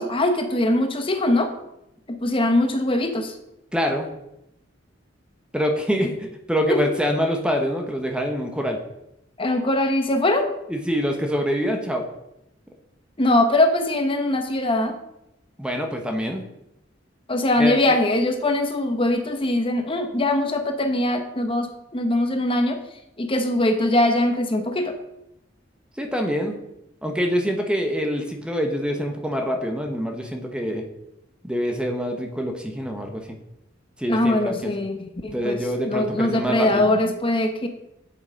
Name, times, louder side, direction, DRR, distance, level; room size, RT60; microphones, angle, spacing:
voice 1, 0.0-1.5 2.1-3.3 6.7-6.8 9.4-10.5 13.2-15.0 17.3-22.8 23.2-24.9 34.1-35.6 35.9-37.7, left 1 dB, 30° left, 5 dB, 1.0 m, -22 dB
voice 2, 3.7-4.1 5.5-8.8 10.7-12.0 15.6-16.4 17.6-18.0 26.0-26.5 27.0-30.8 31.4-33.4 34.0-34.7 35.3-36.8, equal, 5° right, 3 dB, 1.0 m, -25 dB
7.7 x 7.7 x 5.2 m, 0.85 s
head